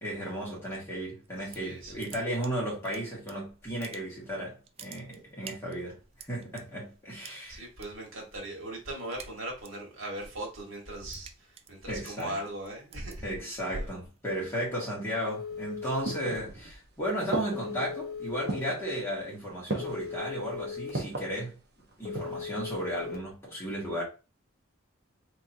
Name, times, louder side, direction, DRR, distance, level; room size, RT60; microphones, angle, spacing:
voice 1, 0.0-7.6 11.9-12.4 13.2-21.6 22.0-24.0, equal, 15° left, 1.8 m, -34 dB
sound 1, 1.3-1.7 2.0-3.3 3.6-4.3 4.6-6.6 7.2-7.9 8.2-8.5 8.8-9.9 10.3-14.8, right 3 dB, 30° right, 0.3 m, -45 dB
voice 2, 1.5-2.0 7.5-13.3 13.7-13.9, right 1 dB, 85° right, 1.6 m, -39 dB
Telephone, 15.3-16.4 17.5-18.6 19.8-20.9 22.1-23.2, left 6 dB, 45° left, 1.0 m, -38 dB
sound 2, 15.5-16.9 17.3-17.9 18.5-18.9 19.7-20.1 20.9-21.4 21.9-22.5 22.8-22.9, right 2 dB, 55° right, 0.8 m, -35 dB
3.6 x 2.9 x 2.7 m
head